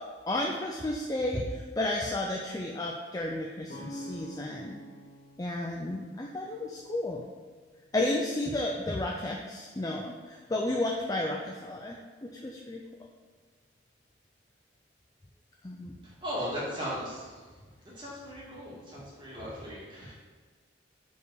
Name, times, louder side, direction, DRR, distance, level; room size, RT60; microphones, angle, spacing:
voice 1, 0.3-4.8 5.4-7.2 7.9-12.8 15.6-15.9, left 1 dB, 20° left, 0 dB, 0.4 m, -32 dB
sound 1, 3.7-7.5, equal, 50° left, 1.3 m, -47 dB
voice 2, 16.2-17.3 18.0-20.1, equal, 25° right, -7 dB, 2.0 m, -37 dB
5.3 x 4.8 x 4.7 m, 1.4 s
head